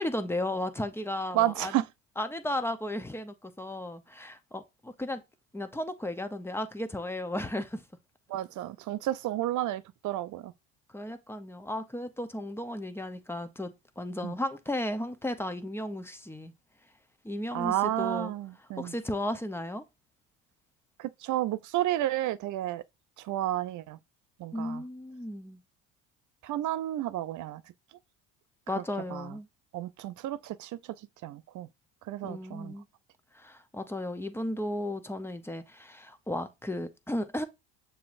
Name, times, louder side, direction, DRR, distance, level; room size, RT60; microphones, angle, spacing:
voice 1, 0.0-1.8 2.2-5.2 5.5-7.8 10.9-16.5 17.2-18.3 18.8-19.8 24.5-25.6 28.7-29.5 32.2-32.9 33.3-37.4, left 1 dB, 5° left, 0.7 m, -34 dB
voice 2, 1.3-1.8 8.3-10.5 14.2-14.3 17.5-18.9 21.0-22.8 23.2-24.0 24.4-24.8 26.4-27.6 29.1-29.3 29.7-30.7 31.2-31.7 32.1-32.7, right 14 dB, 50° right, 0.5 m, -31 dB
6.8 x 3.0 x 2.5 m
hypercardioid pair, 70°, 41 cm